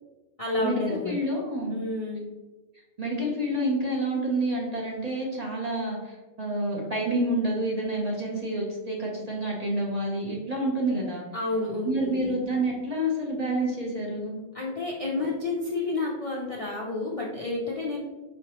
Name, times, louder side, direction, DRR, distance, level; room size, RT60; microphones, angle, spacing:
voice 1, 0.4-1.1 1.7-2.2 11.3-12.3 14.5-18.0, left 2 dB, 40° left, -5 dB, 0.5 m, -30 dB
voice 2, 1.1-1.8 3.0-11.2 11.8-14.4, right 1 dB, 40° right, -3 dB, 0.7 m, -28 dB
4.9 x 3.2 x 2.8 m, 1.2 s
omnidirectional pair, 1.3 m